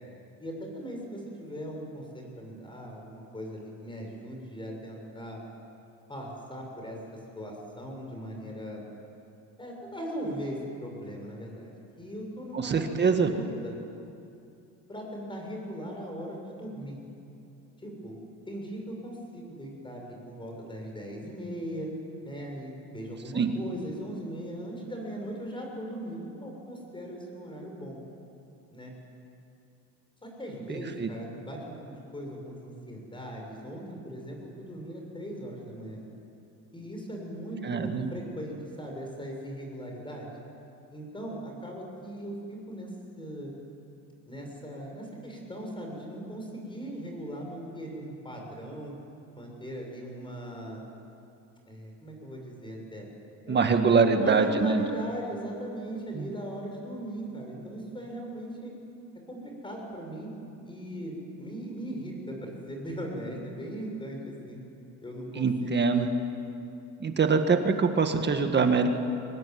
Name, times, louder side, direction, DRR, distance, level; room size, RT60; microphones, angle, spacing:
voice 1, 0.4-5.4 6.1-8.8 9.6-11.7 12.0-13.7 14.9-17.0 17.8-18.2 18.5-21.9 22.2-28.0 28.7-28.9 30.2-36.0 36.7-40.3 40.9-42.9 43.2-43.5 44.3-48.9 49.3-50.9 51.7-53.1 53.4-53.7 54.1-58.7 59.3-60.3 60.6-64.6 65.0-66.1, equal, 15° left, 1 dB, 7.0 m, -39 dB
voice 2, 12.5-13.3 23.3-23.5 30.7-31.1 37.6-38.1 53.5-54.8 56.1-56.3 65.4-66.1 67.0-68.9, right 5 dB, 30° right, 6 dB, 1.8 m, -24 dB
24.0 x 20.0 x 9.6 m, 2.7 s
cardioid pair, 120°, 35 cm